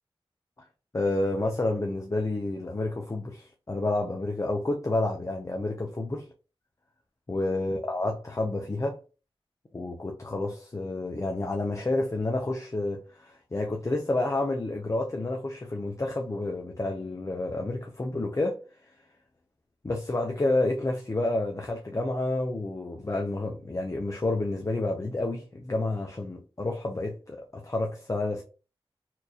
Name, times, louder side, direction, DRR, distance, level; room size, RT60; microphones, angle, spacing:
voice 1, 0.9-6.3 7.3-9.0 9.7-18.6 19.8-28.4, left 2 dB, 35° left, 0.6 m, -29 dB
4.3 x 2.5 x 2.8 m
wide cardioid pair, 70°, 10 cm